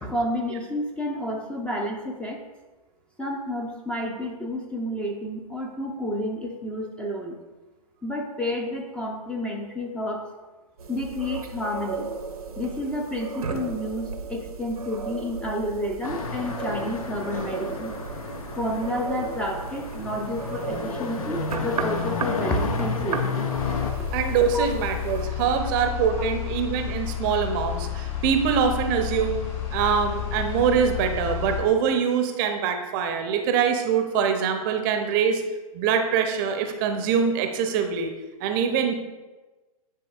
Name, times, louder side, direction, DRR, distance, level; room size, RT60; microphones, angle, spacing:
voice 1, 0.0-2.4 3.2-7.4 8.0-10.3 10.9-12.1 12.6-17.9 18.6-23.5 24.5-24.7, left 1 dB, 5° left, 1 dB, 0.5 m, -30 dB
sound 1, 10.8-25.3, right 4 dB, 75° right, 0.8 m, -35 dB
sound 2, 16.0-23.9, left 5 dB, 65° left, 0.8 m, -32 dB
sound 3, 23.6-31.6, left 10 dB, 45° left, 2.0 m, -31 dB
voice 2, 24.1-29.4 29.7-35.4 35.7-38.1 38.4-38.9, right 7 dB, 35° right, 6 dB, 0.7 m, -24 dB
10.0 x 4.6 x 2.4 m, 1.2 s
figure-of-eight pair, 115°, 19 cm